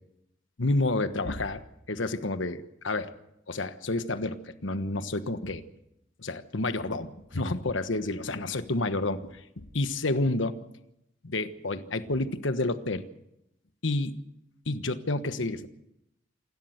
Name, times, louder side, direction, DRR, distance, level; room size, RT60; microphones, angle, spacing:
voice 1, 0.6-1.6 1.9-3.1 3.5-5.6 6.2-10.6 11.2-13.1 13.8-14.2 14.7-15.7, left 2 dB, 70° left, 11 dB, 1.3 m, -29 dB
27.5 x 12.5 x 8.0 m, 0.85 s
head